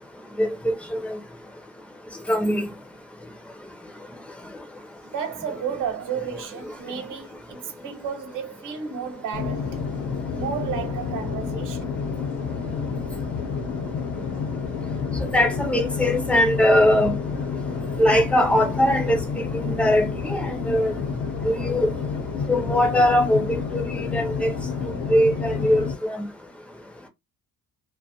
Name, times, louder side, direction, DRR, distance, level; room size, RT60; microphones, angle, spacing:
voice 1, 0.4-1.2 2.3-2.7 15.2-17.1 18.0-19.2 19.5-20.9 21.4-21.9 22.5-24.5 25.1-26.2, left 1 dB, 5° left, 0.4 m, -21 dB
voice 2, 5.0-9.8 10.3-11.8, right 7 dB, 65° right, 0.9 m, -32 dB
sound 1, 9.3-25.9, left 5 dB, 90° left, 0.8 m, -29 dB
2.5 x 2.3 x 2.7 m
cardioid pair, 170°, 34 cm